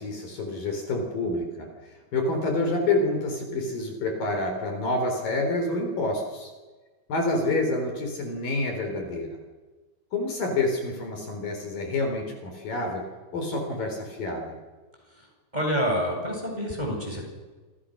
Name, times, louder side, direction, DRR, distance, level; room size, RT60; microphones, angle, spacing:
voice 1, 0.0-1.7 2.1-6.5 7.1-9.4 10.1-13.0 13.3-14.6, left 2 dB, 55° left, 4 dB, 5.3 m, -28 dB
voice 2, 15.5-17.3, equal, 10° right, 0 dB, 7.7 m, -27 dB
28.0 x 27.0 x 6.6 m, 1.3 s
omnidirectional pair, 4.8 m